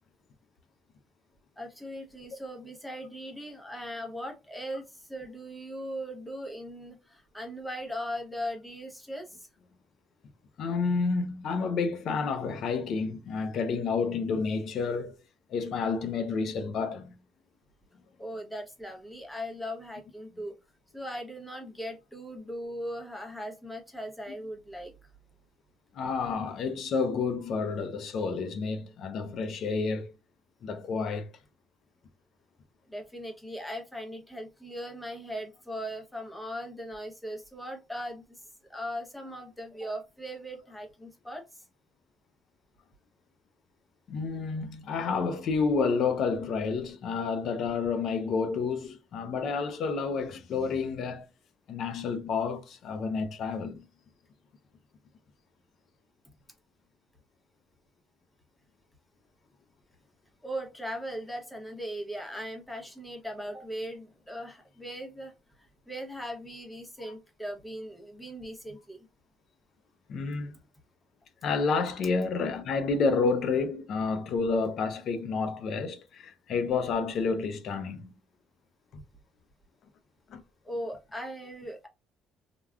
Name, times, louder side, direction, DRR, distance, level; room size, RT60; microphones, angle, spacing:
voice 1, 1.6-9.5 18.2-20.5 20.9-24.9 32.9-38.4 38.7-41.6 60.4-65.3 65.6-69.0 80.6-81.9, equal, 5° left, 0.7 m, -39 dB
voice 2, 10.6-15.1 15.5-17.1 25.9-30.1 30.6-31.3 44.1-51.3 51.7-53.9 67.0-67.1 70.1-70.5 71.4-78.2 80.3-80.4, left 4 dB, 55° left, 0.6 m, -30 dB
3.5 x 2.3 x 2.2 m
cardioid pair, 135°, 0 cm